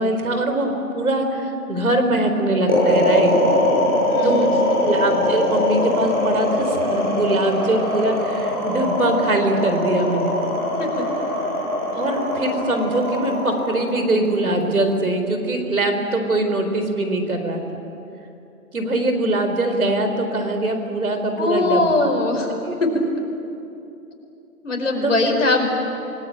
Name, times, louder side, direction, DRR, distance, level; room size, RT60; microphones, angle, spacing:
voice 1, 0.0-3.4 4.2-4.5 4.8-10.3 11.9-17.8 18.7-21.9 22.7-22.8 25.0-25.1, right 1 dB, 70° right, 6 dB, 4.6 m, -22 dB
sound 1, 2.7-15.0, left 1 dB, 25° right, 5.9 m, -21 dB
voice 2, 4.1-4.5 4.9-5.0 10.8-11.1 21.4-22.5 22.8-23.0 24.6-25.7, left 2 dB, 55° left, 2 dB, 5.1 m, -21 dB
29.0 x 19.5 x 9.0 m, 2.8 s
hypercardioid pair, 175°, 45 cm